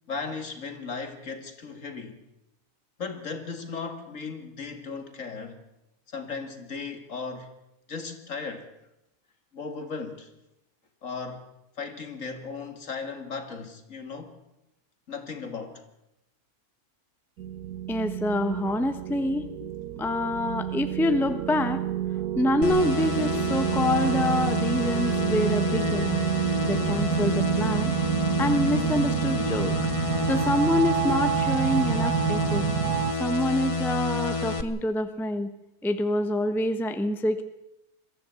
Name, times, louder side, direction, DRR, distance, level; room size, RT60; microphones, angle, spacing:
voice 1, 0.1-2.2 3.0-5.6 6.1-7.5 7.9-8.7 9.5-10.3 11.0-11.5 11.8-14.4 15.1-15.8, left 4 dB, 55° left, 2.4 m, -36 dB
sound 1, 17.4-33.1, right 12 dB, 90° right, 1.4 m, -29 dB
voice 2, 17.9-19.5 20.0-21.8 22.4-26.2 26.6-27.9 28.4-29.7 30.3-32.6 33.2-35.5 35.8-37.4, left 1 dB, ahead, 0.9 m, -26 dB
sound 2, 22.6-34.6, left 3 dB, 25° left, 1.0 m, -29 dB
22.0 x 14.5 x 8.2 m
omnidirectional pair, 1.6 m